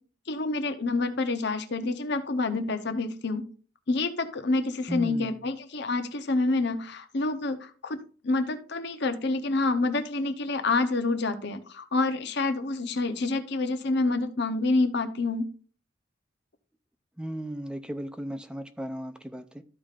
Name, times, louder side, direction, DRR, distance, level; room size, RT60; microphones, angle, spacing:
voice 1, 0.3-3.5 3.9-8.0 8.2-15.5, left 3 dB, 55° left, 0.8 m, -27 dB
voice 2, 4.9-5.3 17.2-19.6, equal, 5° right, 0.5 m, -35 dB
13.5 x 5.0 x 2.5 m
head